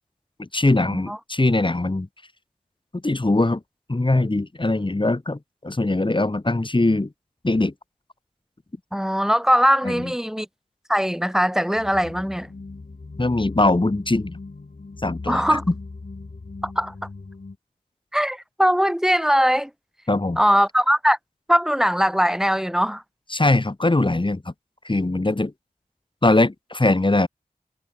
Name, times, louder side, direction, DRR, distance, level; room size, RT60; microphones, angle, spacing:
voice 1, 0.4-2.1 3.0-3.6 3.9-5.4 5.6-7.1 7.4-7.7 9.8-10.1 13.2-14.4 15.0-15.4 20.1-20.4 23.3-24.5 24.9-25.5 26.2-27.3, left 2 dB, 30° left, 1.9 m, -21 dB
voice 2, 8.9-10.5 10.9-12.5 15.3-15.6 16.6-16.9 18.1-19.7 20.4-21.2 21.5-23.0, equal, 5° right, 1.0 m, -20 dB
sound 1, 11.8-17.6, left 3 dB, 55° left, 4.2 m, -39 dB
cardioid pair, 40°, 16 cm